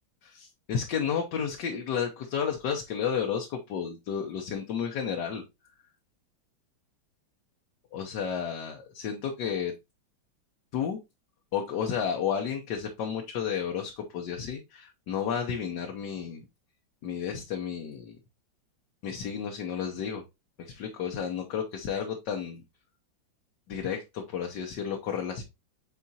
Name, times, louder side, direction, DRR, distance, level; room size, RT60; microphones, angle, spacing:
voice 1, 0.2-5.4 7.9-9.7 10.7-11.0 11.5-16.4 17.0-18.2 19.0-20.2 20.6-22.6 23.7-25.4, left 7 dB, 65° left, 3 dB, 1.4 m, -32 dB
8.4 x 4.2 x 2.7 m, 0.24 s
omnidirectional pair, 2.1 m